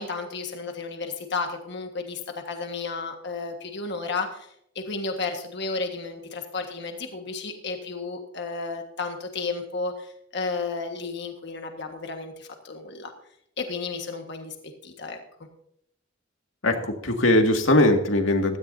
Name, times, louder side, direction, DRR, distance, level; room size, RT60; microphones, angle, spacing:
voice 1, 0.0-13.1 13.6-14.5 14.8-15.2, left 4 dB, 60° left, 4 dB, 1.6 m, -33 dB
voice 2, 16.6-18.6, left 1 dB, 80° left, 4 dB, 2.0 m, -20 dB
16.0 x 13.5 x 2.7 m, 0.73 s
head